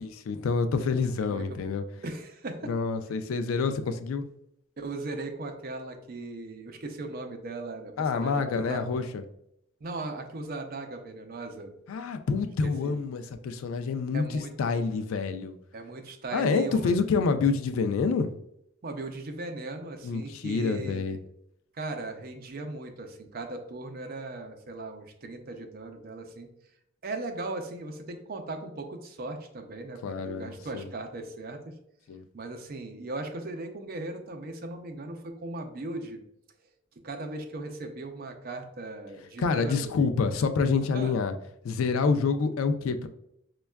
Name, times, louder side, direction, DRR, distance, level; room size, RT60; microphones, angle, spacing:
voice 1, 0.0-1.8 2.7-4.3 8.0-9.2 11.9-15.6 16.3-18.3 20.0-21.2 30.0-30.9 32.1-32.2 39.4-41.3 41.6-43.1, left 4 dB, 90° left, 9 dB, 0.3 m, -27 dB
voice 2, 1.2-1.7 2.0-2.7 4.8-8.4 8.7-8.8 9.8-11.8 12.6-13.0 14.1-15.0 15.7-16.9 18.8-21.2 21.7-26.5 27.0-31.8 32.3-36.2 37.0-40.0 40.9-41.2, right 2 dB, 45° right, 5 dB, 0.5 m, -38 dB
5.1 x 2.2 x 2.2 m, 0.76 s
head